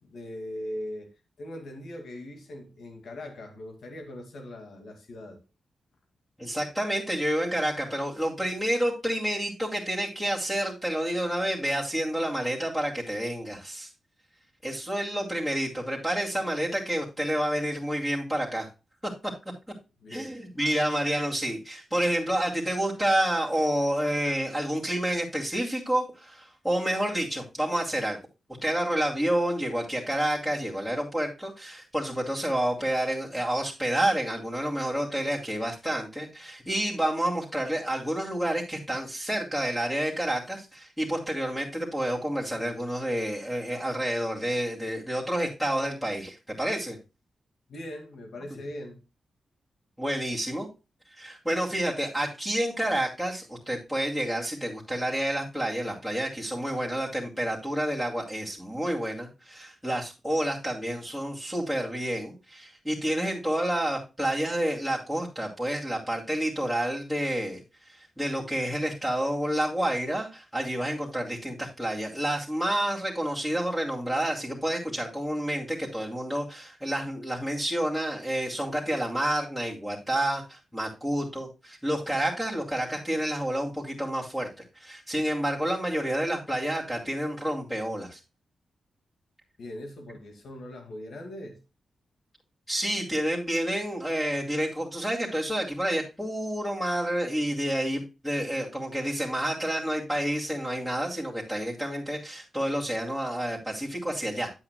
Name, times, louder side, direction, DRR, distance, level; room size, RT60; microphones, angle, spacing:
voice 1, 0.0-1.1 1.4-5.4 20.0-20.4 47.7-49.0 85.6-85.7 89.6-91.6, left 1 dB, 75° left, 2.1 m, -40 dB
voice 2, 6.4-13.9 14.6-18.7 20.1-28.2 28.6-47.0 48.5-48.6 50.0-50.7 51.2-67.6 67.9-84.5 84.8-88.2 92.7-104.5, right 1 dB, 5° left, 2.4 m, -29 dB
9.9 x 8.5 x 2.2 m
cardioid pair, 50°, 0 cm